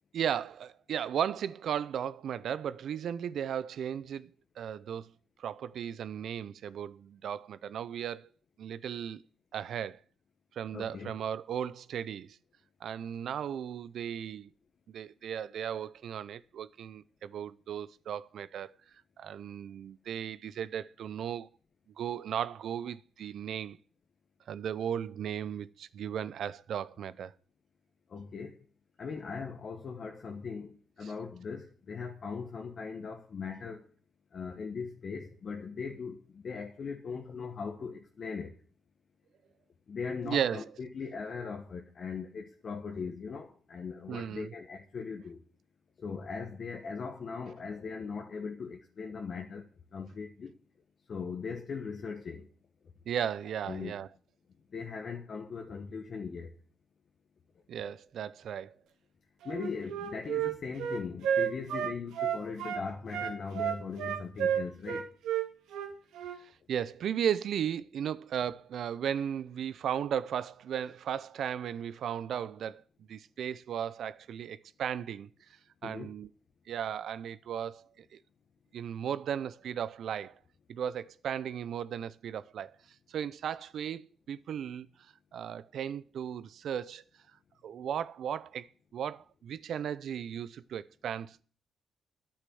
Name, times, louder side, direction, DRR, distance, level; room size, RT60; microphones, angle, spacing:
voice 1, 0.1-4.3 4.6-5.1 5.4-8.3 8.6-9.2 9.5-10.0 10.5-12.4 12.8-14.5 14.9-18.8 19.2-21.5 22.0-23.8 24.5-27.3 31.0-31.1 40.2-40.6 44.1-44.5 53.1-54.1 57.7-58.7 66.4-72.8 73.1-75.3 75.8-76.3 76.7-78.2 78.7-80.4 80.7-82.7 83.1-84.9 85.3-87.0 87.6-91.4, right 9 dB, 65° right, 0.7 m, -36 dB
voice 2, 10.7-11.1 28.1-28.6 29.0-33.8 34.3-38.5 39.9-45.4 46.0-49.7 49.9-50.5 51.1-52.4 53.7-53.9 54.7-56.5 59.4-65.1 75.8-76.1, left 5 dB, 50° left, 1.4 m, -39 dB
Wind instrument woodwind instrument, 59.4-62.8 63.1-66.4, right 9 dB, 85° right, 1.8 m, -32 dB
10.0 x 8.8 x 7.8 m
cardioid pair, 90°, 0 cm